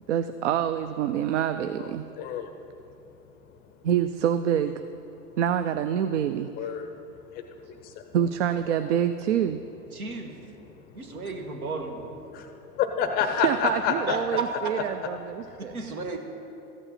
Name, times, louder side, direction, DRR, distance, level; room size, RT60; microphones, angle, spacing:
voice 1, 0.1-2.1 3.8-4.8 5.4-6.5 8.1-9.6 13.4-15.7, right 9 dB, 55° right, 11 dB, 0.5 m, -26 dB
voice 2, 2.2-2.7 3.5-3.8 6.6-8.1 10.7-11.3 12.3-13.9 15.4-15.6, left 8 dB, 20° left, 7 dB, 0.5 m, -31 dB
voice 3, 9.9-10.3 10.9-12.1 14.1-14.2 15.7-16.2, right 2 dB, 75° right, 4 dB, 1.6 m, -34 dB
14.0 x 8.7 x 4.2 m, 2.8 s
figure-of-eight pair, 100°, 44 cm